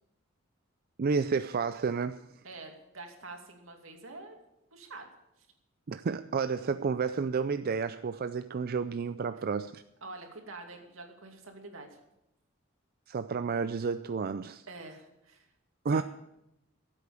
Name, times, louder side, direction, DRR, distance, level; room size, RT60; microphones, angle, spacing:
voice 1, 1.0-2.2 5.9-9.8 13.1-14.6 15.8-16.0, right 5 dB, 45° right, 11 dB, 0.4 m, -31 dB
voice 2, 2.4-4.4 4.7-5.1 9.3-9.4 10.0-12.0 14.7-15.5 15.9-16.0, right 3 dB, 80° right, 3 dB, 2.5 m, -46 dB
15.0 x 8.5 x 6.9 m, 0.86 s
head